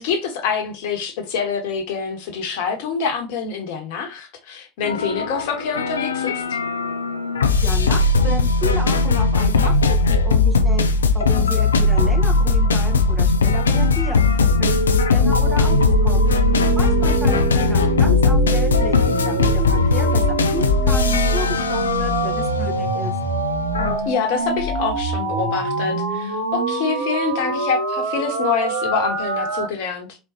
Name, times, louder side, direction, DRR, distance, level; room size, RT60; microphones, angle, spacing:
voice 1, 0.0-6.6 17.7-18.0 24.0-30.2, left 6 dB, 65° left, 1.2 m, -26 dB
sound 1, 4.8-24.0, left 3 dB, 85° left, 0.4 m, -19 dB
voice 2, 7.6-9.8 10.1-16.3 16.7-23.1, right 1 dB, 15° right, 1.7 m, -32 dB
sound 2, 14.6-29.7, right 2 dB, 85° right, 1.2 m, -24 dB
4.3 x 3.9 x 2.7 m
hypercardioid pair, 70°, 0 cm